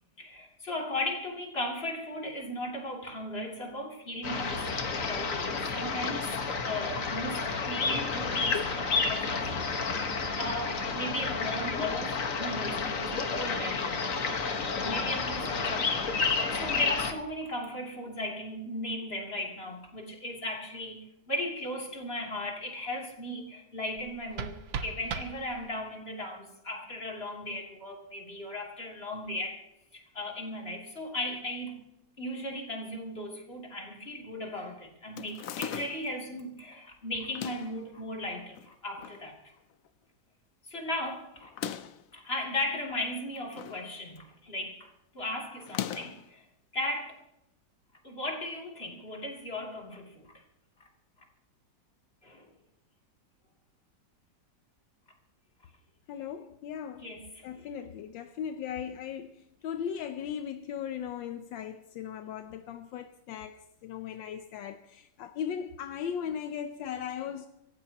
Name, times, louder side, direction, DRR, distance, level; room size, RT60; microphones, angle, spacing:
voice 1, 0.2-6.3 6.6-13.9 14.8-29.6 29.9-31.8 32.2-39.3 40.7-41.5 42.1-46.4 46.7-47.2 48.0-50.3 52.2-52.4 57.0-57.6, left 1 dB, 30° left, 3.2 m, -37 dB
sound 1, 4.2-17.1, left 4 dB, 45° left, 1.7 m, -30 dB
sound 2, 23.9-26.0, right 6 dB, 90° right, 1.8 m, -39 dB
sound 3, 35.2-36.2 37.2-37.8 38.6-39.2 39.6-39.7 39.8-39.9 41.4-42.1 43.1-43.8 44.2-44.5 45.6-46.3, left 9 dB, 65° left, 0.9 m, -39 dB
voice 2, 56.1-57.2 57.4-67.5, left 8 dB, 80° left, 1.5 m, -38 dB
26.0 x 15.0 x 2.9 m
omnidirectional pair, 2.0 m